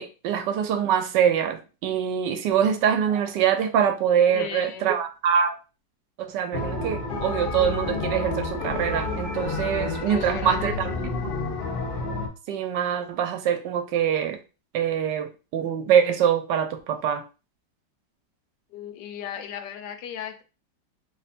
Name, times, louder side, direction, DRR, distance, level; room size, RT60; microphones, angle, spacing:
voice 1, 0.0-5.6 6.2-10.9 12.5-14.4 14.7-17.2, right 8 dB, 80° right, 1.2 m, -24 dB
voice 2, 4.3-4.9 10.1-10.9 18.7-20.4, left 8 dB, 80° left, 1.2 m, -37 dB
sound 1, 6.5-12.3, left 3 dB, 55° left, 0.6 m, -29 dB
3.2 x 2.2 x 4.1 m
omnidirectional pair, 1.9 m